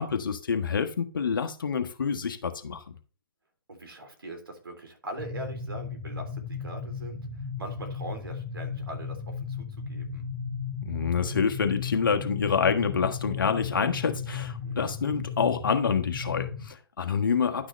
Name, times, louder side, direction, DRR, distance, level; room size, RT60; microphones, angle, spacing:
voice 1, 0.0-2.8 10.8-17.7, left 6 dB, 60° left, 1.4 m, -27 dB
voice 2, 3.7-10.2 14.6-14.8 17.4-17.6, right 1 dB, 75° right, 3.3 m, -42 dB
sound 1, 5.2-16.7, left 5 dB, 30° left, 1.6 m, -35 dB
11.0 x 6.2 x 3.2 m
figure-of-eight pair, 135°, 12 cm